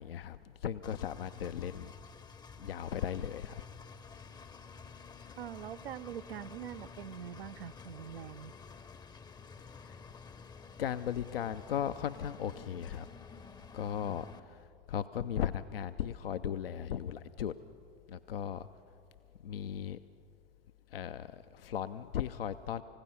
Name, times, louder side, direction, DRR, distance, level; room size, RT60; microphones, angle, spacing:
voice 1, 0.0-1.9 2.6-3.6 9.9-10.0 10.8-13.1 13.7-14.6 14.9-17.5 18.1-18.7 19.4-20.0 20.9-22.8, left 9 dB, 80° left, 11 dB, 0.5 m, -37 dB
Engine, 0.8-14.4, left 5 dB, 15° left, 0.6 m, -51 dB
voice 2, 5.4-8.5, right 9 dB, 80° right, 16 dB, 0.5 m, -44 dB
29.0 x 16.0 x 5.7 m, 2.6 s
figure-of-eight pair, 85°, 29 cm